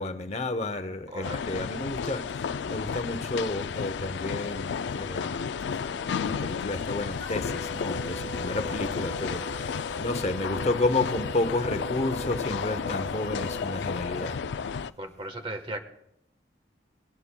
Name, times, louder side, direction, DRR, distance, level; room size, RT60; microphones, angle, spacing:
voice 1, 0.0-14.4, left 2 dB, 35° left, 9 dB, 0.7 m, -31 dB
voice 2, 1.1-1.7 15.0-15.8, right 1 dB, 30° right, 6 dB, 1.2 m, -37 dB
sound 1, 1.2-14.9, left 6 dB, 70° left, 0.4 m, -32 dB
sound 2, 7.2-14.4, right 4 dB, 10° left, 2.1 m, -42 dB
19.5 x 18.0 x 2.3 m, 0.79 s
head